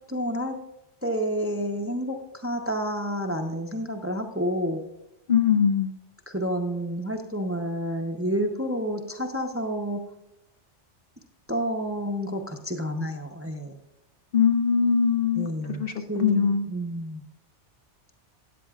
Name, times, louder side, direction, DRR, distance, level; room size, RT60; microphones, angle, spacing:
voice 1, 0.1-0.5 1.0-2.2 2.4-4.8 6.3-10.0 11.5-13.8 15.3-15.8 16.1-17.2, equal, 15° right, 3 dB, 0.7 m, -29 dB
voice 2, 5.3-5.9 14.3-16.7, left 7 dB, 55° left, 6 dB, 0.9 m, -22 dB
13.5 x 9.2 x 2.4 m, 0.91 s
omnidirectional pair, 1.2 m